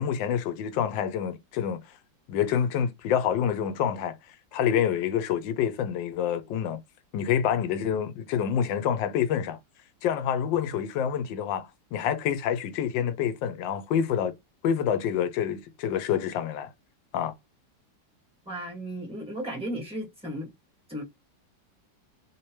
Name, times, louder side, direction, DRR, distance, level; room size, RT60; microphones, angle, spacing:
voice 1, 0.0-1.8 2.3-4.2 4.5-6.8 7.1-9.6 10.0-14.3 14.6-16.7 17.1-17.3, left 8 dB, 85° left, 1.3 m, -27 dB
voice 2, 18.5-20.5 20.9-21.0, right 1 dB, 5° right, 1.6 m, -35 dB
3.2 x 2.9 x 3.0 m
omnidirectional pair, 2.0 m